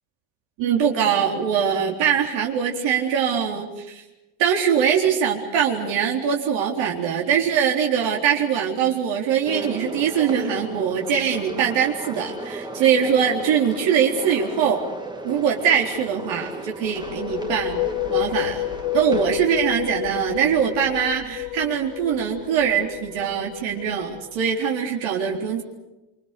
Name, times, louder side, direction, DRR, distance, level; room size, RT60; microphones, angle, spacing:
voice 1, 0.6-4.0 4.4-14.8 15.2-17.8 18.1-18.6 18.9-25.6, right 8 dB, 60° right, 0 dB, 4.0 m, -22 dB
sound 1, 9.5-19.4, right 1 dB, 10° right, 2.0 m, -35 dB
sound 2, 16.8-24.5, left 16 dB, 65° left, 1.5 m, -30 dB
27.0 x 26.5 x 6.8 m, 1.0 s
cardioid pair, 150°, 50 cm